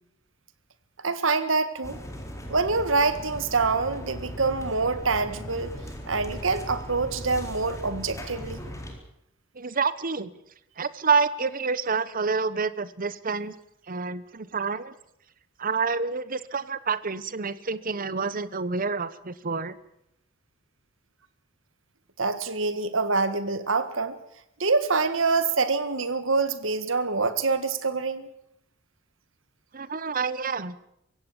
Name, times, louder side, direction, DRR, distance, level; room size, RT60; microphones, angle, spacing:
voice 1, 1.0-2.0 2.5-5.7 6.1-8.6 22.2-24.2 24.6-28.3, right 4 dB, 70° right, 12 dB, 1.7 m, -25 dB
sound 1, 1.8-8.9, equal, 15° left, 4.0 m, -38 dB
voice 2, 9.5-10.3 10.8-13.5 13.9-14.9 15.6-19.8 29.7-30.8, right 5 dB, 45° right, 16 dB, 1.0 m, -28 dB
23.5 x 16.5 x 7.2 m, 0.79 s
head